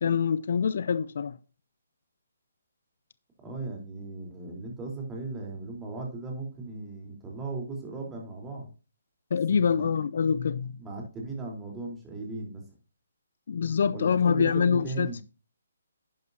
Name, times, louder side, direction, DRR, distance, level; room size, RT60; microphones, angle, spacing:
voice 1, 0.0-1.4 9.3-10.7 13.5-15.1, left 6 dB, 55° left, 0.6 m, -25 dB
voice 2, 3.4-8.7 9.5-10.1 10.8-12.6 13.9-15.2, right 3 dB, 15° right, 3.7 m, -37 dB
11.5 x 9.4 x 2.7 m
figure-of-eight pair, 140°, 0 cm